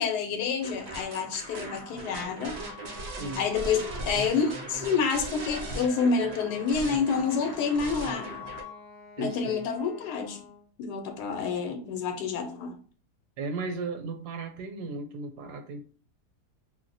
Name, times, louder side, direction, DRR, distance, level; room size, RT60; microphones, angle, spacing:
voice 1, 0.0-2.6 3.4-8.3 9.2-10.4 10.8-12.7, left 5 dB, 90° left, 1.2 m, -28 dB
sound 1, 0.6-8.6, right 2 dB, 55° right, 0.7 m, -39 dB
Wind instrument woodwind instrument, 2.5-5.5 5.7-8.8, left 8 dB, 70° left, 0.9 m, -49 dB
voice 2, 3.2-3.5 9.2-9.7 13.4-15.8, right 3 dB, 80° right, 1.2 m, -35 dB
Wind instrument woodwind instrument 2, 5.0-10.7, left 1 dB, 45° left, 0.6 m, -49 dB
2.7 x 2.0 x 3.9 m
omnidirectional pair, 1.7 m